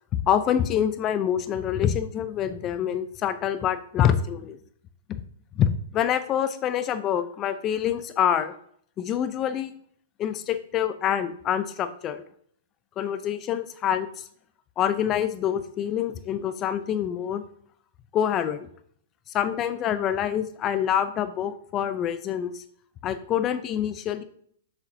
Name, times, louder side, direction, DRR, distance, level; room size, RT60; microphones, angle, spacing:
voice 1, 0.2-4.6 5.5-8.5 9.0-9.7 10.2-12.2 13.0-14.2 14.8-17.4 18.1-18.7 19.3-22.6 23.0-24.2, left 9 dB, 30° left, 11 dB, 0.6 m, -26 dB
7.0 x 6.7 x 2.8 m, 0.63 s
hypercardioid pair, 120°, 0 cm